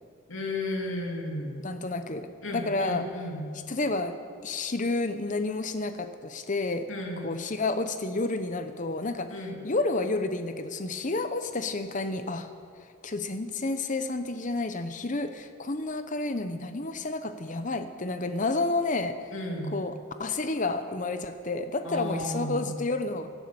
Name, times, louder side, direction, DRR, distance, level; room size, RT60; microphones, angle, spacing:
voice 1, 0.3-1.6 2.4-3.5 6.9-7.3 9.3-9.6 19.3-19.8 21.8-22.8, left 1 dB, 70° left, 0 dB, 2.6 m, -33 dB
voice 2, 1.6-2.3 2.5-3.0 3.7-4.2 4.4-6.9 7.2-9.4 9.6-12.5 13.0-19.2 19.7-23.3, left 2 dB, 35° left, 9 dB, 0.8 m, -30 dB
17.0 x 9.3 x 7.0 m, 2.3 s
head